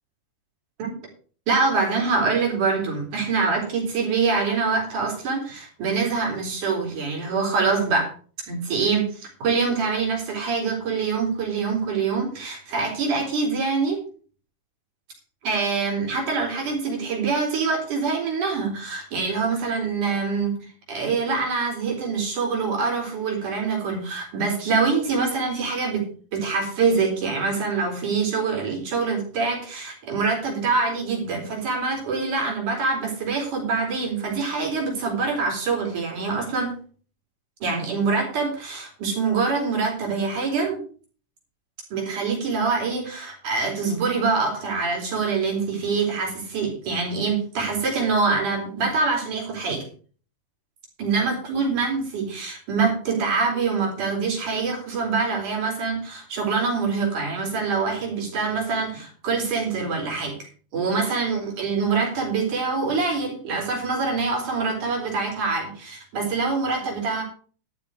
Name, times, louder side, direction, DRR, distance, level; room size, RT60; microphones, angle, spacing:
voice 1, 1.5-8.1 8.5-14.0 15.4-36.8 37.6-40.8 41.9-49.9 51.0-60.4 60.7-67.2, right 4 dB, 70° right, 0 dB, 5.4 m, -25 dB
13.0 x 6.9 x 6.2 m, 0.41 s
omnidirectional pair, 3.7 m